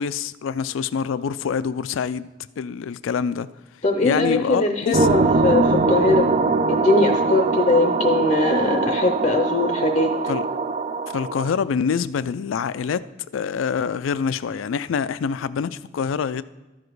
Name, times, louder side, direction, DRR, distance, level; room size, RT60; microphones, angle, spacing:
voice 1, 0.0-2.3 2.6-3.5 4.0-5.1 10.3-10.4 11.1-13.0 13.3-16.4, left 6 dB, 90° left, 0.4 m, -25 dB
voice 2, 3.8-6.3 6.7-10.1, left 2 dB, 35° left, 0.6 m, -21 dB
sound 1, 4.9-11.6, right 3 dB, 35° right, 0.4 m, -22 dB
13.0 x 5.0 x 4.6 m
head